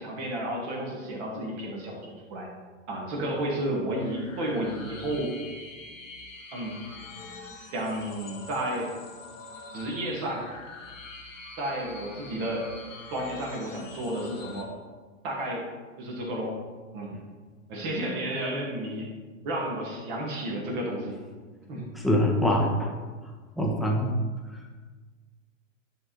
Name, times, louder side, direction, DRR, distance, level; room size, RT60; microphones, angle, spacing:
voice 1, 0.0-2.5 2.9-5.3 6.5-6.8 7.7-8.9 9.7-10.4 11.6-12.7 13.1-14.7 15.2-15.7 16.0-16.6 16.9-17.1 17.7-19.1 19.4-21.1 21.7-21.9, right 1 dB, 40° right, -1 dB, 2.0 m, -32 dB
sound 1, 4.0-14.6, left 3 dB, 80° left, 1.5 m, -45 dB
voice 2, 21.9-22.9 23.6-24.1, equal, ahead, 0 dB, 1.1 m, -24 dB
10.5 x 3.8 x 4.5 m, 1.4 s
figure-of-eight pair, 100°, 38 cm